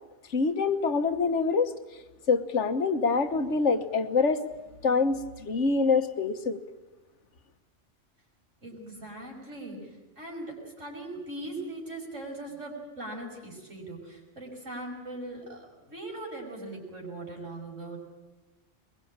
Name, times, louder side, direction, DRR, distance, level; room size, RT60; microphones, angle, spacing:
voice 1, 0.3-2.0 2.3-4.4 4.8-6.6, left 4 dB, 70° left, 9 dB, 1.5 m, -25 dB
voice 2, 8.6-18.0, right 2 dB, 80° right, 0 dB, 6.1 m, -40 dB
22.0 x 22.0 x 8.8 m, 1.1 s
omnidirectional pair, 1.3 m